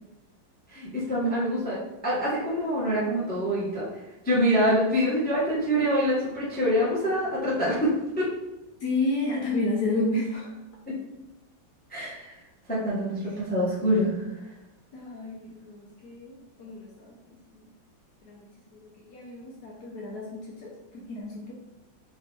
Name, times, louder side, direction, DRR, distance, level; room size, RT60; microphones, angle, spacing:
voice 1, 0.7-1.8 2.0-3.9 4.2-8.3 10.9-11.0 11.9-12.3 12.7-14.1, equal, 5° left, -7 dB, 0.8 m, -25 dB
voice 2, 8.8-10.5 13.2-13.3 14.9-17.1 17.5-17.7 18.2-21.5, left 2 dB, 60° left, -3 dB, 1.2 m, -31 dB
4.8 x 3.0 x 3.4 m, 0.96 s
omnidirectional pair, 2.2 m